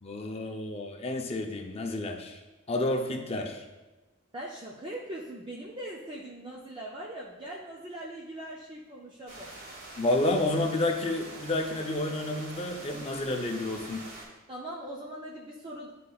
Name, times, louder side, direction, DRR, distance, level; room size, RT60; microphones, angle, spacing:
voice 1, 0.0-2.4 2.7-3.6 10.0-14.0, left 2 dB, 30° left, 3 dB, 0.5 m, -30 dB
voice 2, 4.3-9.5 14.5-15.9, right 1 dB, 25° right, -4 dB, 0.5 m, -41 dB
sound 1, 9.3-14.2, right 2 dB, 65° right, 2.0 m, -45 dB
9.7 x 4.2 x 2.3 m, 1.1 s
head